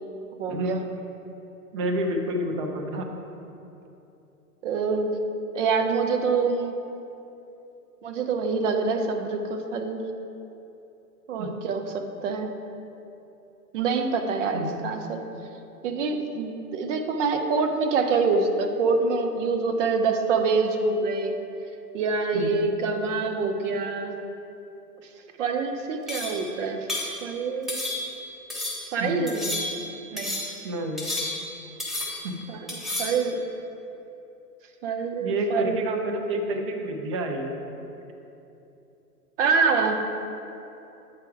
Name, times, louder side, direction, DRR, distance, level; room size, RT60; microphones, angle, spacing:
voice 1, 0.4-0.8 4.6-5.1 5.5-6.7 8.0-10.0 11.3-12.5 13.7-15.2 15.8-21.4 21.9-24.1 25.4-26.9 27.2-27.8 28.9-29.5 30.1-30.4 32.5-32.7 33.0-33.4 34.8-35.8 39.4-40.0, right 4 dB, 50° right, 5 dB, 0.9 m, -25 dB
voice 2, 1.7-3.0 11.4-11.6 14.5-14.8 22.3-22.7 29.0-29.2 30.6-31.1 32.2-32.4 35.2-37.6, right 1 dB, 20° right, 3 dB, 0.3 m, -29 dB
sound 1, 26.1-26.5 26.9-27.2 27.7-28.2 28.5-28.9 29.3-29.9 30.2-30.6 31.0-31.5 31.8-32.3 32.7-33.2, left 1 dB, ahead, 1.1 m, -31 dB
8.6 x 4.5 x 4.6 m, 2.9 s
hypercardioid pair, 115°, 47 cm